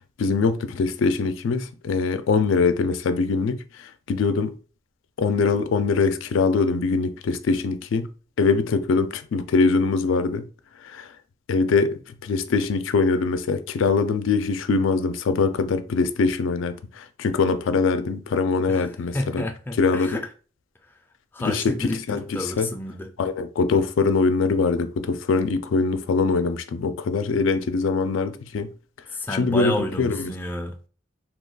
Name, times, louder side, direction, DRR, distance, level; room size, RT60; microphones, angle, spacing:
voice 1, 0.2-4.5 5.2-8.1 8.4-10.5 10.8-11.1 11.5-19.4 19.8-20.2 21.4-22.7 23.2-28.7 29.3-30.3, left 4 dB, 85° left, 0.4 m, -23 dB
voice 2, 19.1-20.3 21.3-23.1 29.1-30.7, left 1 dB, 10° left, 0.3 m, -30 dB
2.8 x 2.2 x 3.8 m
head